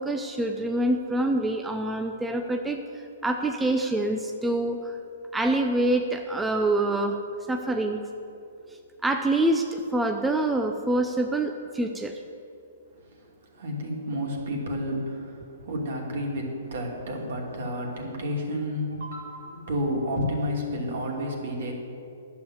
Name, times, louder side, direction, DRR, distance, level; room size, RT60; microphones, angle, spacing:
voice 1, 0.0-2.8 3.2-5.0 5.3-7.2 7.5-8.0 9.0-12.2, right 1 dB, 5° right, 4 dB, 0.6 m, -26 dB
voice 2, 13.0-21.7, equal, 65° right, 0 dB, 2.8 m, -31 dB
11.0 x 7.2 x 7.9 m, 2.6 s
hypercardioid pair, 125°, 0 cm